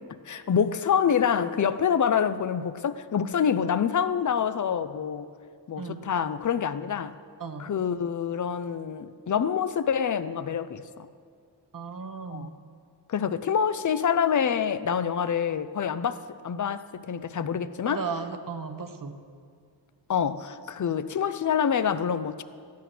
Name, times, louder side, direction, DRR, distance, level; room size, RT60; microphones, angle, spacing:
voice 1, 0.3-5.3 5.7-7.1 7.6-10.8 12.3-12.5 13.1-16.2 16.4-18.0 20.1-22.4, left 7 dB, 45° left, 0.6 m, -26 dB
voice 2, 5.8-6.1 7.4-7.7 11.7-12.5 17.8-19.2, right 5 dB, 50° right, 1.1 m, -35 dB
15.0 x 10.5 x 6.1 m
wide cardioid pair, 110°, 42 cm